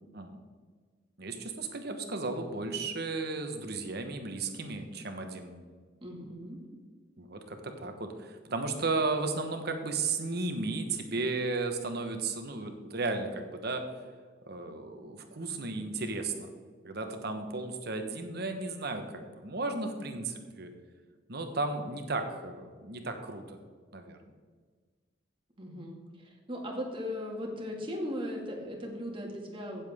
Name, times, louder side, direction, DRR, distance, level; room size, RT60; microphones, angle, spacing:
voice 1, 1.2-5.6 7.2-13.8 14.5-16.5 16.8-20.7 21.3-23.6 23.9-24.2, right 3 dB, 60° right, 6 dB, 1.3 m, -34 dB
voice 2, 6.0-6.6 25.6-29.8, equal, 30° right, 0 dB, 2.2 m, -38 dB
16.0 x 7.5 x 3.7 m, 1.5 s
head